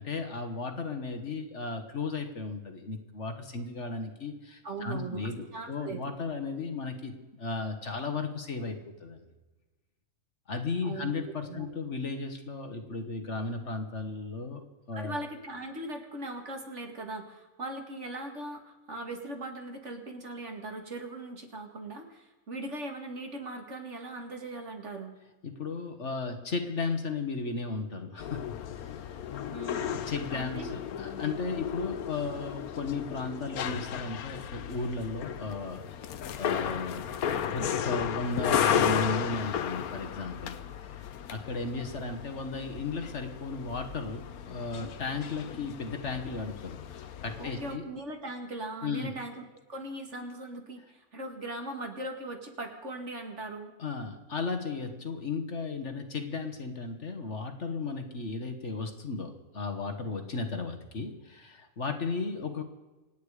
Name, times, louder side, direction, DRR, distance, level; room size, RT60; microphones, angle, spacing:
voice 1, 0.0-9.2 10.5-15.2 25.4-28.4 28.8-29.3 29.8-35.8 36.4-37.2 37.5-41.0 41.3-47.8 48.8-49.1 53.8-62.6, left 4 dB, 55° left, 6 dB, 1.8 m, -35 dB
voice 2, 4.6-6.1 10.8-11.1 11.4-11.7 14.9-25.2 29.5-29.9 30.3-30.7 47.4-49.4 49.7-53.7, right 2 dB, 50° right, 3 dB, 2.4 m, -39 dB
sound 1, 28.2-47.8, left 8 dB, 85° left, 1.3 m, -34 dB
26.5 x 9.2 x 5.0 m, 1.1 s
omnidirectional pair, 1.5 m